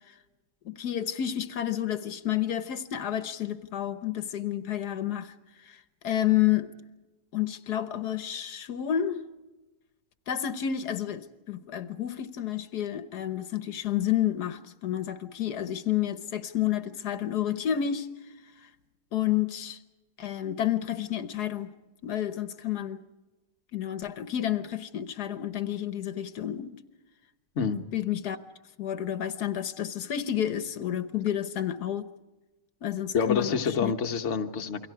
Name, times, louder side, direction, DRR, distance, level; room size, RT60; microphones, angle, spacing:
voice 1, 0.6-5.3 5.6-6.7 7.3-9.2 10.3-18.1 19.1-19.8 20.2-21.7 22.0-23.0 23.7-26.8 27.6-28.4 28.8-32.1 32.8-33.9, left 11 dB, 85° left, 1.6 m, -30 dB
voice 2, 33.1-34.9, left 6 dB, 50° left, 1.4 m, -27 dB
29.0 x 23.5 x 4.8 m
omnidirectional pair, 1.7 m